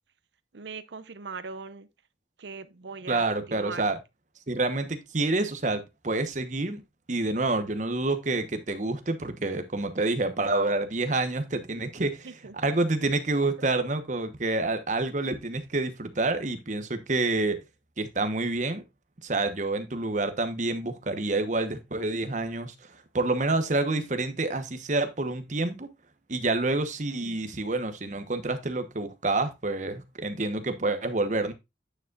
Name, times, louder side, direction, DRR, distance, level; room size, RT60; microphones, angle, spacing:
voice 1, 0.5-1.9 2.4-3.8 12.2-12.5 27.2-27.5, right 4 dB, 85° right, 0.7 m, -40 dB
voice 2, 3.1-4.0 4.5-6.8 7.1-12.3 12.5-17.6 18.0-18.8 19.2-22.7 23.1-25.9 26.3-31.5, right 2 dB, 45° right, 1.1 m, -28 dB
9.1 x 7.1 x 2.4 m
head